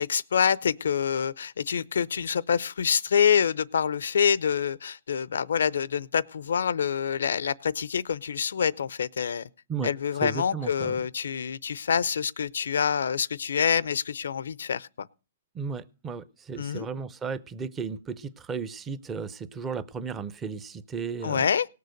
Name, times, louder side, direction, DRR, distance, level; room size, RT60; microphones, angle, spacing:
voice 1, 0.0-9.5 9.8-15.1 16.6-16.9 21.2-21.7, left 7 dB, 80° left, 0.6 m, -26 dB
voice 2, 10.2-11.1 15.5-21.4, right 5 dB, 10° right, 0.6 m, -34 dB
18.5 x 6.8 x 6.4 m
hypercardioid pair, 165°, 0 cm